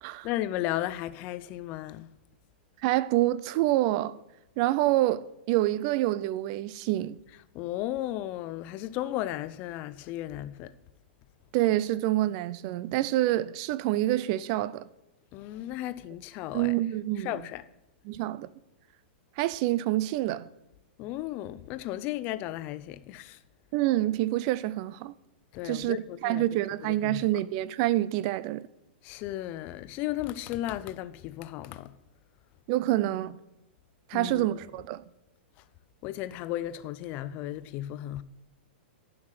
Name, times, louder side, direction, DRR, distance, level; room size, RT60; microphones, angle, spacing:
voice 1, 0.2-2.1 7.5-10.7 15.3-16.7 17.2-17.7 21.0-23.4 25.5-27.2 29.0-32.0 34.1-34.6 35.6-35.7 36.0-38.2, left 14 dB, 30° left, 0.5 m, -35 dB
voice 2, 2.8-4.2 4.6-7.2 11.5-14.9 16.5-17.3 18.1-18.5 19.4-20.5 23.7-25.1 25.6-26.0 26.2-28.7 32.7-33.4 34.1-35.0, right 15 dB, 35° right, 0.4 m, -27 dB
11.0 x 5.8 x 6.4 m
supercardioid pair, 165°, 6 cm